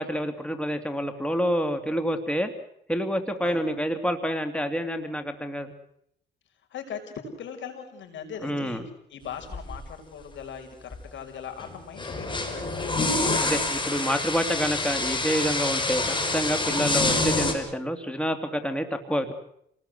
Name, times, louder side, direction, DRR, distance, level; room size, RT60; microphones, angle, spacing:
voice 1, 0.0-2.5 2.9-5.7 8.4-8.8 13.4-19.3, equal, 5° left, 7 dB, 2.6 m, -28 dB
voice 2, 6.7-8.8 9.1-13.0, left 7 dB, 70° left, 5 dB, 6.2 m, -40 dB
sound 1, 9.5-9.8 10.9-11.0 11.6-17.5, left 2 dB, 25° left, 5.8 m, -27 dB
28.5 x 20.0 x 8.1 m, 0.73 s
cardioid pair, 90°, 20 cm